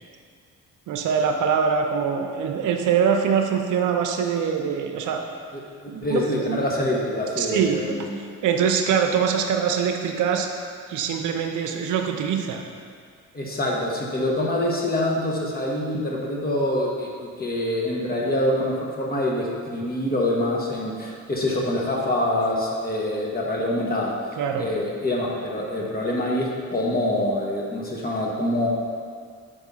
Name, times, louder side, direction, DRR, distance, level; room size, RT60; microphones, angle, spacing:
voice 1, 0.9-5.2 5.9-6.6 7.4-10.5 10.9-12.6 24.4-24.7, right 7 dB, 80° right, 3 dB, 0.7 m, -23 dB
voice 2, 5.5-8.1 13.3-24.1 24.6-28.7, left 1 dB, 30° left, -3 dB, 1.2 m, -25 dB
5.3 x 3.6 x 5.5 m, 2.1 s
cardioid pair, 90°, 30 cm